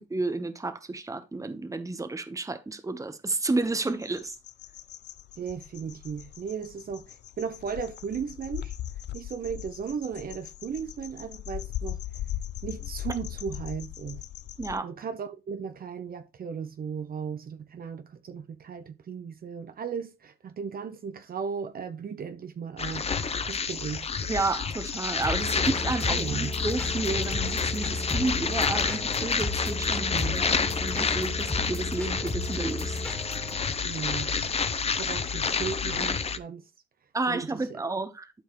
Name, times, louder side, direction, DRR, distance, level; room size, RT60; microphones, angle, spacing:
voice 1, 0.0-4.3 14.6-14.9 24.3-33.2 37.1-38.3, right 3 dB, 15° right, 1.1 m, -31 dB
sound 1, 3.7-14.8, left 12 dB, 60° left, 0.5 m, -39 dB
voice 2, 5.4-8.7 9.1-12.0 12.6-14.2 14.8-23.1 23.5-24.1 25.6-25.7 26.1-26.5 30.0-30.5 33.8-34.3 34.9-36.6 37.3-37.8, right 6 dB, 50° right, 0.9 m, -36 dB
sound 2, 22.8-36.4, left 5 dB, 30° left, 0.8 m, -29 dB
sound 3, 25.2-33.6, left 2 dB, 5° left, 2.2 m, -34 dB
12.0 x 4.6 x 3.1 m
cardioid pair, 90°, 20 cm